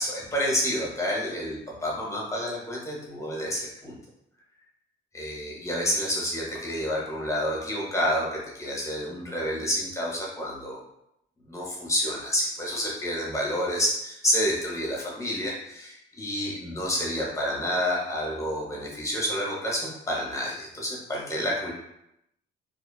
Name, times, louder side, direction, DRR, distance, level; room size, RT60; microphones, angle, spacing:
voice 1, 0.0-4.0 5.1-10.8 11.5-21.7, equal, 15° left, -3 dB, 0.8 m, -29 dB
2.5 x 2.2 x 2.3 m, 0.81 s
cardioid pair, 90°, 20 cm